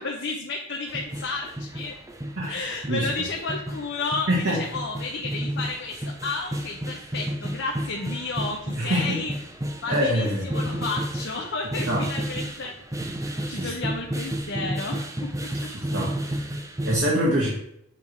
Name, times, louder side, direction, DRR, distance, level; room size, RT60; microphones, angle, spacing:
voice 1, 0.0-2.0 2.5-9.3 9.8-12.7 13.5-15.5, left 3 dB, 60° left, 0 dB, 0.9 m, -32 dB
sound 1, 0.9-17.0, right 1 dB, 15° right, 0.7 m, -32 dB
voice 2, 4.3-4.6 8.8-9.2 9.9-10.5 11.9-12.1 13.5-13.7 15.7-16.5 16.8-17.5, equal, 60° right, -5 dB, 1.8 m, -25 dB
7.4 x 3.7 x 4.7 m, 0.74 s
head